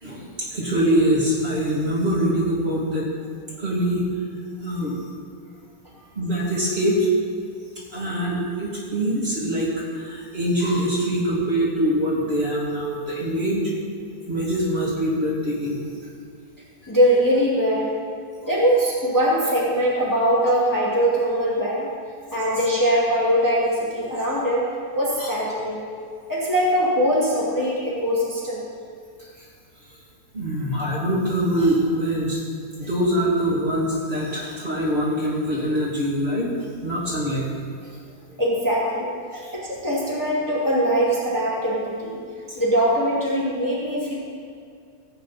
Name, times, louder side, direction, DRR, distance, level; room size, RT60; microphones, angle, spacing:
voice 1, 0.0-3.1 3.6-4.0 4.6-4.9 6.1-7.1 7.9-13.7 14.3-15.8 25.2-25.3 30.3-32.4 32.8-36.5 36.8-37.5 39.3-39.4, equal, 35° right, -7 dB, 2.6 m, -23 dB
voice 2, 16.9-17.9 18.4-21.9 22.3-24.7 24.9-25.9 26.3-28.6 38.4-39.1 39.5-42.2 42.6-44.1, equal, 10° left, -7 dB, 2.1 m, -21 dB
16.0 x 8.4 x 4.2 m, 2.3 s
omnidirectional pair, 1.9 m